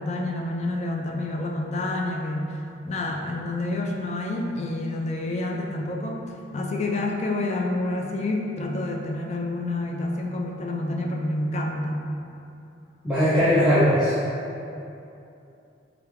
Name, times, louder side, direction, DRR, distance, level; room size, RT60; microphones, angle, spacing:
voice 1, 0.0-2.6 2.8-6.2 6.5-12.1, left 2 dB, 35° left, 1 dB, 0.3 m, -28 dB
voice 2, 13.0-14.1, equal, 5° right, -14 dB, 0.7 m, -19 dB
3.5 x 3.4 x 3.5 m, 2.7 s
head